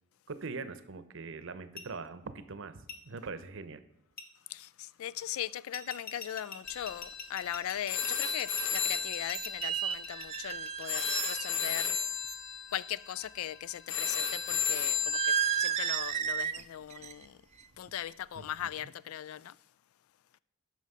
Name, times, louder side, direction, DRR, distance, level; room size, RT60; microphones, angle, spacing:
voice 1, 0.3-3.8 18.3-18.5 18.7-18.9, right 4 dB, 65° right, 0.7 m, -42 dB
sound 1, 1.8-1.9 2.9-3.0 4.2-4.3 5.7-11.8 13.0-14.3, left 4 dB, 45° left, 1.0 m, -44 dB
voice 2, 4.5-12.0 12.7-17.4 17.8-19.5, left 11 dB, 85° left, 0.3 m, -39 dB
sound 2, 6.6-16.2, left 6 dB, 65° left, 1.1 m, -35 dB
sound 3, 7.5-7.6 8.8-8.9 9.3-11.6 11.9-12.3 15.1-16.6 16.9-17.3 17.6-17.9, right 8 dB, 30° right, 0.3 m, -33 dB
9.6 x 6.1 x 5.5 m
head